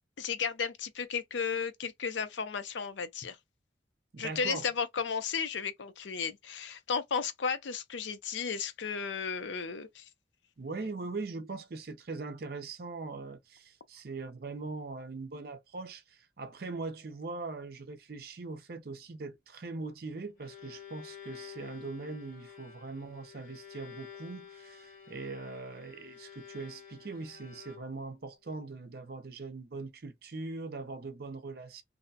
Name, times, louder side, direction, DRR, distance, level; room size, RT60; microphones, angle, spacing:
voice 1, 0.2-3.4 4.2-10.1, left 6 dB, 80° left, 0.5 m, -34 dB
voice 2, 4.1-4.7 10.6-31.8, right 3 dB, 55° right, 0.5 m, -41 dB
Bowed string instrument, 20.4-28.2, left 8 dB, 45° left, 0.9 m, -50 dB
2.6 x 2.1 x 2.6 m
head